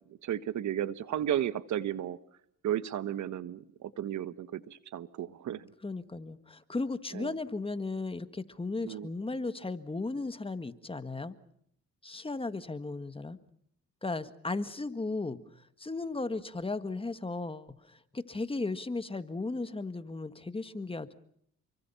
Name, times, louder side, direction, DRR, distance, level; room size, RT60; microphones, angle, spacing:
voice 1, 0.2-2.2 2.6-5.7 7.1-7.3 8.8-9.1, right 11 dB, 70° right, 14 dB, 1.3 m, -34 dB
voice 2, 5.8-11.3 12.0-13.4 14.0-21.1, left 3 dB, 20° left, 11 dB, 1.6 m, -36 dB
30.0 x 23.5 x 5.7 m, 0.69 s
cardioid pair, 90°, 30 cm